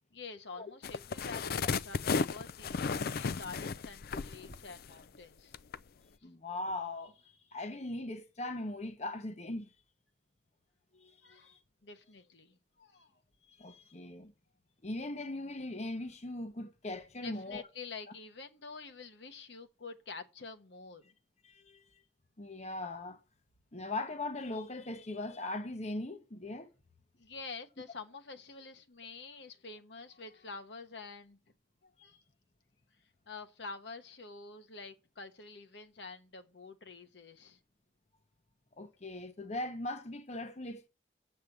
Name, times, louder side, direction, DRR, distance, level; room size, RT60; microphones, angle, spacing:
voice 1, 0.1-5.5 11.2-11.5 11.8-13.2 17.2-21.0 27.2-31.4 31.8-32.1 33.3-37.6, left 4 dB, 70° left, 1.1 m, -48 dB
sound 1, 0.8-5.2 5.5-5.8, left 5 dB, 55° left, 0.4 m, -34 dB
voice 2, 6.2-9.7 10.9-11.6 13.4-14.3 14.8-17.6 21.4-22.0 22.4-23.2 23.7-26.7 32.0-32.2 38.8-40.9, left 2 dB, 35° left, 0.9 m, -40 dB
7.4 x 6.7 x 7.8 m
head